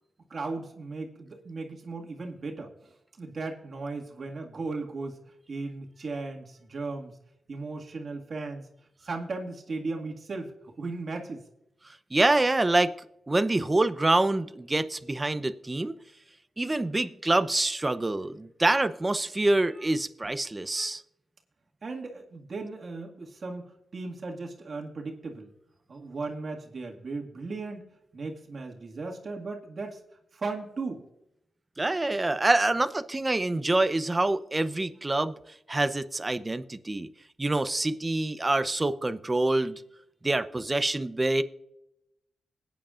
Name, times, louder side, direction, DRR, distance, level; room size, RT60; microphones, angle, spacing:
voice 1, 0.3-2.7 3.2-5.2 5.5-7.1 7.5-8.7 9.0-11.4 21.8-23.6 23.9-25.5 25.9-30.0 30.3-31.0, right 3 dB, 55° right, 1 dB, 2.0 m, -36 dB
voice 2, 12.1-12.9 13.3-16.0 16.6-21.0 31.8-35.3 35.7-37.1 37.4-39.8 40.2-41.4, right 2 dB, 25° right, 12 dB, 0.8 m, -26 dB
21.0 x 9.2 x 2.5 m, 0.84 s
cardioid pair, 65°, 0 cm